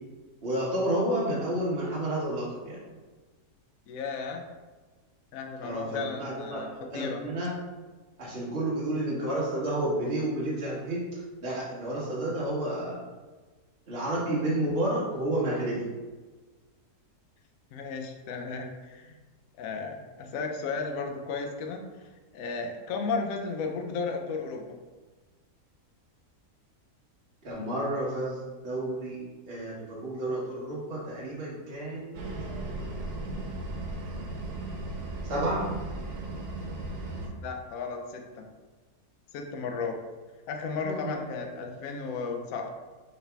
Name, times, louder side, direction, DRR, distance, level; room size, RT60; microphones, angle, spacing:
voice 1, 0.4-2.8 5.6-7.5 8.2-13.0 13.9-15.9 27.4-32.1 35.2-35.7 40.8-41.1, right 1 dB, 40° right, -8 dB, 1.3 m, -31 dB
voice 2, 3.9-4.4 5.3-7.2 17.7-19.2 19.6-21.8 22.3-24.8 37.4-38.5 39.3-40.0 40.5-42.7, left 4 dB, 70° left, 3 dB, 1.0 m, -34 dB
sound 1, 32.1-37.3, right 2 dB, 85° right, 1.3 m, -36 dB
4.8 x 3.3 x 3.4 m, 1.3 s
omnidirectional pair, 1.7 m